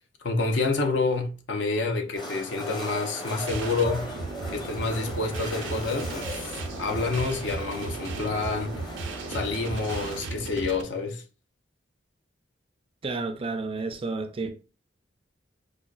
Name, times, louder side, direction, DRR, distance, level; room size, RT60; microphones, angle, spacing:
voice 1, 0.2-4.1 4.5-8.8 9.3-11.2, left 3 dB, 70° left, 0.7 m, -28 dB
sound 1, 2.2-10.2, left 1 dB, 25° left, 0.7 m, -39 dB
sound 2, 3.5-10.8, right 3 dB, 90° right, 0.6 m, -36 dB
sound 3, 3.7-7.7, left 2 dB, 50° left, 1.7 m, -48 dB
voice 2, 13.0-14.5, right 3 dB, 30° right, 0.4 m, -31 dB
4.9 x 2.3 x 2.3 m
head